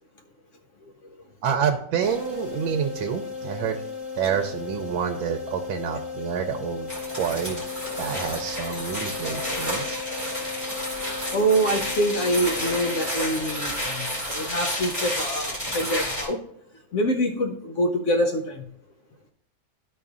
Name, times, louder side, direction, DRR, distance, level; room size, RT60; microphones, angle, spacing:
voice 1, 1.4-3.8 4.2-7.6 8.0-10.0, right 7 dB, 90° right, 4 dB, 1.4 m, -28 dB
sound 1, 2.0-13.7, left 5 dB, 45° left, 1.4 m, -36 dB
sound 2, 6.9-16.3, equal, 10° left, 2.0 m, -31 dB
voice 2, 11.3-16.4 16.9-18.7, right 1 dB, 90° left, 3 dB, 0.6 m, -25 dB
12.5 x 5.3 x 2.4 m, 0.72 s
omnidirectional pair, 2.1 m